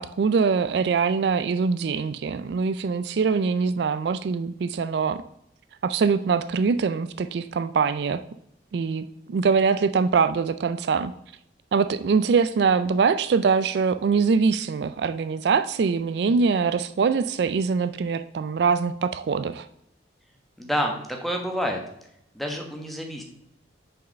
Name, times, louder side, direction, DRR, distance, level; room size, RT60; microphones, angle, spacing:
voice 1, 0.0-5.2 5.8-8.2 8.7-11.1 11.7-19.7, right 5 dB, 60° right, 12 dB, 0.3 m, -23 dB
voice 2, 20.6-21.8 22.3-23.2, equal, ahead, 2 dB, 1.2 m, -28 dB
6.2 x 4.8 x 6.3 m, 0.77 s
head